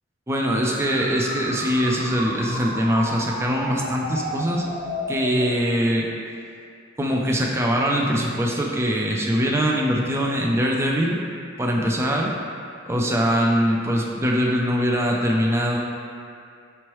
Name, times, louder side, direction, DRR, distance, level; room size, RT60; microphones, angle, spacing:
voice 1, 0.3-4.6 5.1-6.1 7.0-11.2 11.6-12.3 12.9-15.8, equal, 15° right, -1 dB, 0.3 m, -22 dB
sound 1, 0.6-5.6, left 1 dB, 35° left, 0.9 m, -32 dB
4.4 x 3.1 x 3.0 m, 2.4 s
head